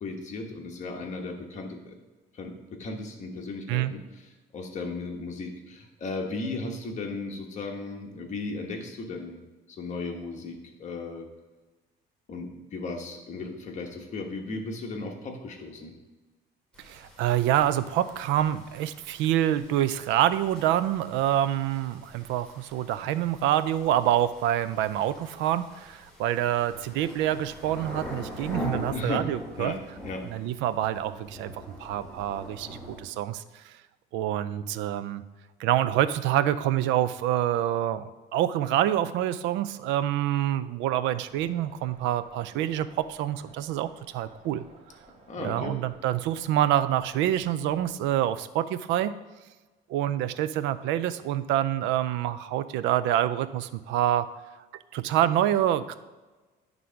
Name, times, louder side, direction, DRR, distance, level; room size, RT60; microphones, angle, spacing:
voice 1, 0.0-2.0 2.3-4.2 4.5-9.4 9.7-11.3 12.3-15.9 28.9-29.3 29.6-30.3 45.3-45.7, left 3 dB, 40° left, 2 dB, 1.2 m, -36 dB
sound 1, 16.7-33.0, equal, 5° left, 2.3 m, -43 dB
voice 2, 16.8-29.8 30.3-31.5 31.8-33.7 34.1-35.2 35.6-44.6 45.4-49.1 49.9-54.3 54.9-55.9, right 12 dB, 90° right, 13 dB, 0.5 m, -26 dB
sound 2, 41.1-48.1, right 3 dB, 35° right, 1.3 m, -55 dB
9.4 x 3.8 x 5.8 m, 1.2 s
cardioid pair, 145°, 19 cm